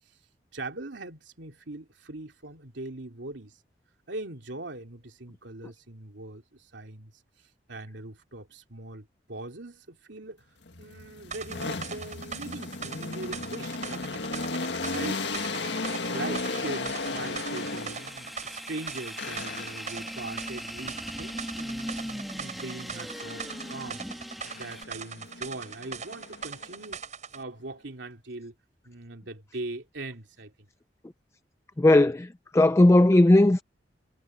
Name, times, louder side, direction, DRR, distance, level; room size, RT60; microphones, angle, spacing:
voice 1, 0.5-3.6 4.1-7.1 7.4-10.5 10.8-15.2 16.1-24.0 24.4-27.0 27.3-28.5 28.8-30.7, right 2 dB, 80° right, 2.8 m, -41 dB
sound 1, 10.7-18.3 19.2-20.0 23.2-24.0 24.4-26.8, left 3 dB, 70° left, 1.8 m, -35 dB
sound 2, 11.3-27.4, right 6 dB, 40° right, 7.3 m, -41 dB
sound 3, 14.7-24.8, equal, ahead, 1.9 m, -40 dB
voice 2, 31.8-33.6, left 1 dB, 15° left, 0.4 m, -18 dB
head